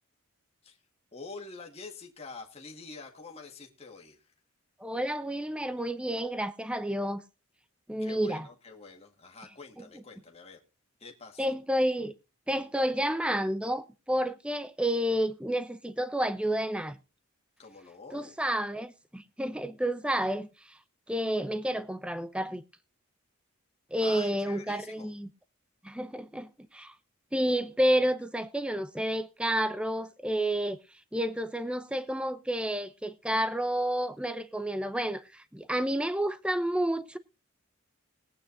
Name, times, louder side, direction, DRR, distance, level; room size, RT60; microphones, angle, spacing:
voice 1, 1.1-4.3 8.0-10.6 11.0-11.5 17.6-18.4 24.0-25.1, left 4 dB, 30° left, 1.8 m, -46 dB
voice 2, 4.8-7.2 7.9-8.5 11.4-12.1 12.5-17.0 18.1-20.8 21.1-22.6 23.9-25.3 25.8-26.9 27.3-30.8 31.1-37.2, equal, 5° right, 0.7 m, -30 dB
21.0 x 8.9 x 2.7 m
head